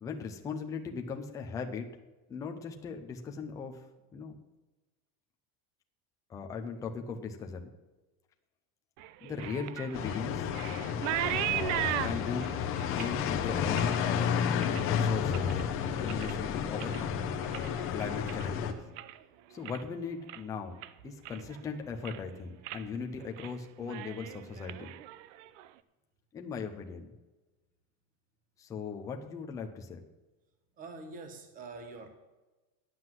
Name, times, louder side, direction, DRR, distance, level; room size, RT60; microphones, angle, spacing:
voice 1, 0.0-1.9 2.3-3.8 4.1-4.4 6.3-7.7 9.2-10.4 11.5-14.4 14.9-15.5 15.8-17.2 17.9-18.8 19.5-20.8 21.0-25.0 26.3-27.1 28.6-30.0, left 5 dB, 10° left, 3 dB, 0.4 m, -38 dB
sound 1, 9.0-15.6 16.0-16.5 16.7-19.2 19.5-20.0 20.3-20.4 20.8-21.6 21.9-22.3 22.6-22.9 23.2-23.5 23.8-25.7, right 14 dB, 65° right, 0.6 m, -38 dB
sound 2, 9.9-18.7, left 7 dB, 35° left, 0.8 m, -31 dB
voice 2, 30.8-32.1, right 3 dB, 20° right, 7 dB, 1.1 m, -45 dB
9.6 x 7.7 x 7.5 m, 1.1 s
cardioid pair, 180°, 40 cm